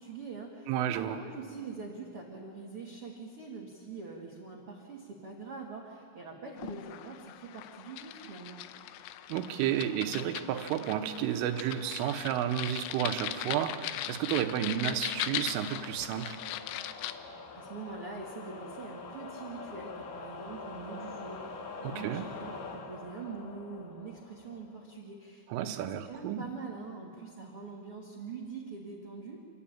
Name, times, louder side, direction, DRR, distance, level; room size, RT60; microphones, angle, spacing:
voice 1, 0.0-8.6 17.5-29.4, right 4 dB, 55° right, -2 dB, 1.5 m, -44 dB
voice 2, 0.7-1.2 9.3-16.4 21.8-22.2 25.5-26.4, right 10 dB, 80° right, 7 dB, 3.5 m, -32 dB
sound 1, 6.6-17.2, left 13 dB, 85° left, 3.3 m, -39 dB
sound 2, 8.5-25.0, left 4 dB, 65° left, 2.1 m, -47 dB
28.5 x 11.5 x 8.7 m, 2.2 s
omnidirectional pair, 5.8 m